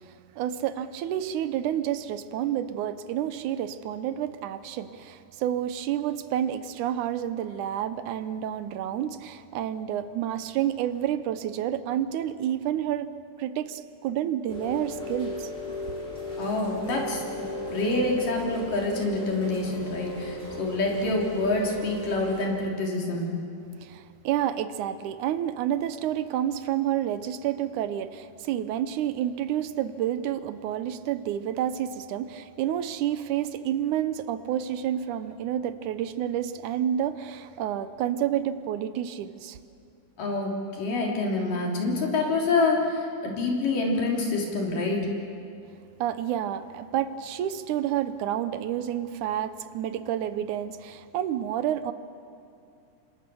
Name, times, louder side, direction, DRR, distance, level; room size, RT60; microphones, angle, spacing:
voice 1, 0.0-13.1 13.4-15.5 15.9-16.0 23.8-39.6 46.0-51.9, right 10 dB, 75° right, 13 dB, 2.1 m, -29 dB
Rain, 14.5-22.4, left 1 dB, 15° left, 6.5 m, -36 dB
voice 2, 16.4-17.2 17.7-23.3 40.2-45.1, left 2 dB, 85° left, -1 dB, 5.0 m, -27 dB
29.0 x 25.0 x 7.0 m, 2.6 s
omnidirectional pair, 3.7 m